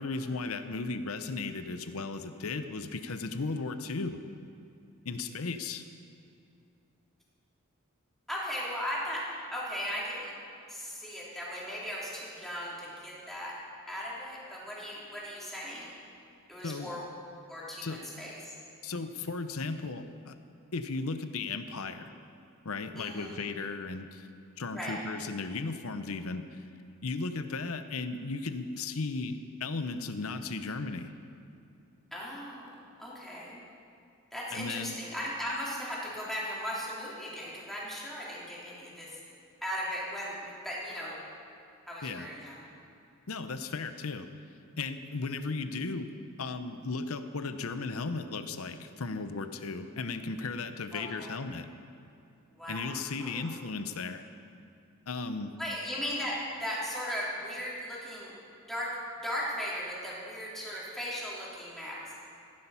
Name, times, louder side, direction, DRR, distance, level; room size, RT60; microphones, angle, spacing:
voice 1, 0.0-4.2 5.0-5.8 16.6-16.9 17.8-18.1 18.8-20.4 20.7-22.1 22.6-24.3 24.6-26.6 27.0-31.1 34.5-35.0 42.0-42.3 43.3-44.3 44.8-46.1 46.4-51.7 52.7-54.2 55.1-55.6, left 3 dB, 70° left, 10 dB, 0.8 m, -35 dB
voice 2, 8.3-10.3 10.7-13.6 13.9-15.9 16.5-17.1 17.5-18.5 22.9-23.4 24.7-25.0 32.1-32.5 33.0-33.6 34.3-39.1 39.6-41.2 41.9-42.6 50.9-51.3 52.6-53.5 55.6-58.3 58.7-59.0 59.2-62.1, equal, ahead, -7 dB, 3.2 m, -37 dB
15.0 x 11.0 x 5.7 m, 2.6 s
head